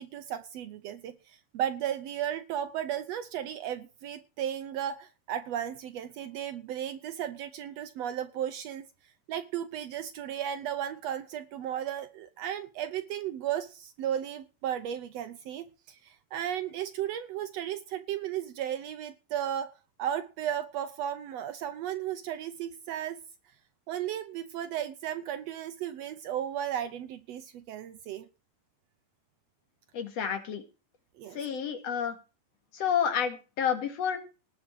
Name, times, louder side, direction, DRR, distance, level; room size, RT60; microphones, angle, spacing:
voice 1, 0.0-8.9 9.3-19.7 20.0-23.2 23.9-28.3 31.2-31.4, right 10 dB, 85° right, 9 dB, 1.4 m, -35 dB
voice 2, 29.9-30.6 31.3-32.2 32.7-34.2, left 8 dB, 50° left, 7 dB, 2.8 m, -30 dB
19.0 x 7.3 x 4.6 m, 0.33 s
omnidirectional pair, 4.0 m